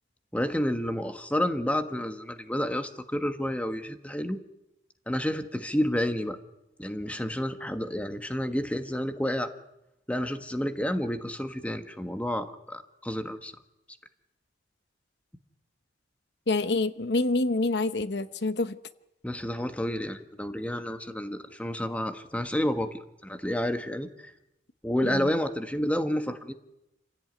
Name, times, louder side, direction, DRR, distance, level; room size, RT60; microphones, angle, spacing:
voice 1, 0.3-4.4 5.1-6.4 6.8-9.5 10.1-13.5 19.2-24.3 24.8-26.5, equal, 5° left, 8 dB, 1.3 m, -30 dB
voice 2, 16.5-18.8 25.0-25.3, left 2 dB, 65° left, 12 dB, 0.9 m, -27 dB
27.5 x 16.5 x 9.3 m, 0.91 s
head